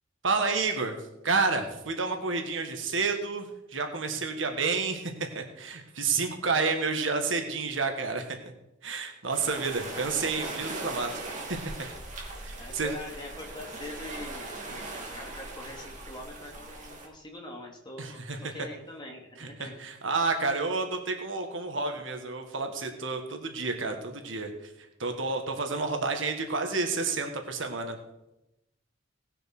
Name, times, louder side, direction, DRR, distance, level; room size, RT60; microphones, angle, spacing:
voice 1, 0.2-1.0 1.2-8.4 8.8-11.1 11.5-11.6 12.4-12.9 18.0-18.5 19.4-24.7 25.0-28.0, right 4 dB, 75° right, 5 dB, 1.7 m, -30 dB
sound 1, 9.3-17.1, right 2 dB, 40° right, 2.8 m, -40 dB
voice 2, 12.6-14.8 15.1-19.7, left 1 dB, 25° left, 0 dB, 2.7 m, -43 dB
18.5 x 6.7 x 6.2 m, 0.92 s
head